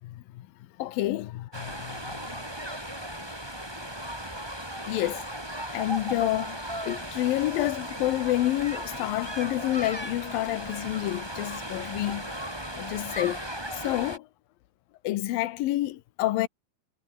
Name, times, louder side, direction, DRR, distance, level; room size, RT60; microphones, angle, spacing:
voice 1, 0.0-0.5 0.8-2.4 4.9-5.2 5.7-6.6 6.8-12.3 12.8-13.4 13.7-14.3 15.0-16.5, left 15 dB, 75° left, 2.8 m, -29 dB
sound 1, 1.5-14.2, right 1 dB, 5° right, 5.8 m, -36 dB
omnidirectional pair, 4.3 m